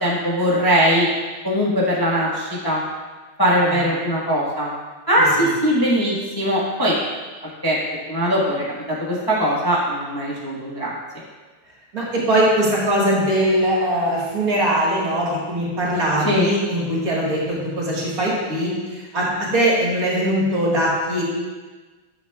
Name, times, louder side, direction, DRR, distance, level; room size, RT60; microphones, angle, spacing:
voice 1, 0.0-1.1 1.4-2.8 3.4-4.7 5.1-7.0 7.6-7.8 8.1-8.5 8.9-10.9 16.2-16.5, equal, 15° left, -6 dB, 0.7 m, -20 dB
voice 2, 11.9-21.2, right 1 dB, 45° right, -5 dB, 1.9 m, -21 dB
9.6 x 6.9 x 2.3 m, 1.3 s
omnidirectional pair, 2.3 m